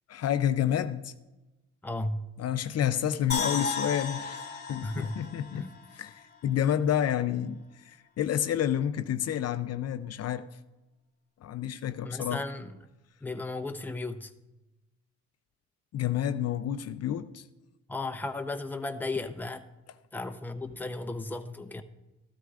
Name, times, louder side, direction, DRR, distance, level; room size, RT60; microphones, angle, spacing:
voice 1, 0.1-1.1 2.4-5.7 5.9-10.5 11.4-12.4 15.9-17.4, left 10 dB, 55° left, 0.5 m, -29 dB
voice 2, 1.8-2.3 4.8-5.2 5.5-5.7 12.0-12.8 13.2-14.3 17.9-19.7 20.1-21.8, left 2 dB, 5° left, 0.7 m, -35 dB
sound 1, 3.3-6.5 6.8-6.9, left 4 dB, 35° left, 2.5 m, -35 dB
14.0 x 12.5 x 2.4 m
cardioid pair, 90°, 30 cm